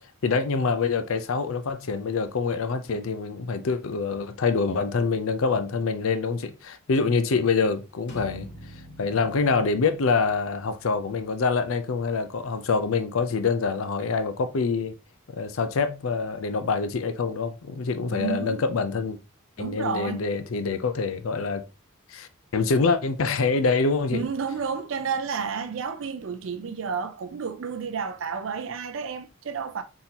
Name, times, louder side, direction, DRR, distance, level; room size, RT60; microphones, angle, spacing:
voice 1, 0.2-8.5 9.0-14.9 15.3-19.2 19.6-21.6 22.1-24.2, left 4 dB, 75° left, 0.5 m, -25 dB
sound 1, 8.1-13.7, equal, 55° left, 0.9 m, -48 dB
voice 2, 18.1-18.6 19.6-20.2 24.1-29.8, right 6 dB, 65° right, 0.4 m, -31 dB
4.1 x 3.8 x 2.8 m
head